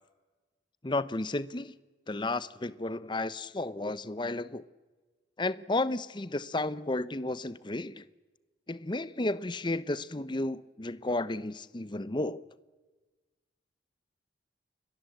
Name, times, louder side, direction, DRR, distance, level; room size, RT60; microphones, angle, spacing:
voice 1, 0.8-1.7 2.1-4.6 5.4-8.0 8.7-12.4, left 2 dB, 25° left, 0.8 m, -32 dB
29.5 x 23.0 x 8.0 m
head